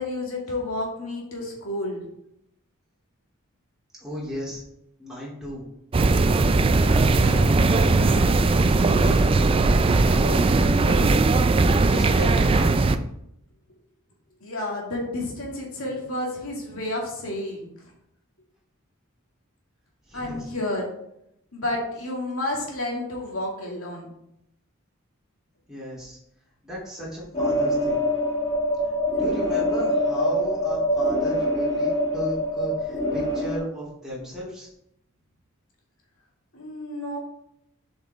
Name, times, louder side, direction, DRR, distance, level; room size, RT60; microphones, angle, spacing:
voice 1, 0.0-2.0 14.4-17.7 20.1-20.9 21.5-24.1 36.5-37.2, left 1 dB, 80° left, -1 dB, 2.2 m, -30 dB
voice 2, 4.0-4.6 5.0-5.6 6.6-8.3 8.6-11.0 11.5-12.8 20.1-20.5 25.7-26.2 26.6-28.0 29.1-34.7, equal, 5° right, -7 dB, 3.0 m, -35 dB
sound 1, 5.9-13.0, right 3 dB, 25° right, 0.3 m, -19 dB
sound 2, 27.3-33.6, equal, 30° left, 1.8 m, -24 dB
7.4 x 5.6 x 3.5 m, 0.78 s
head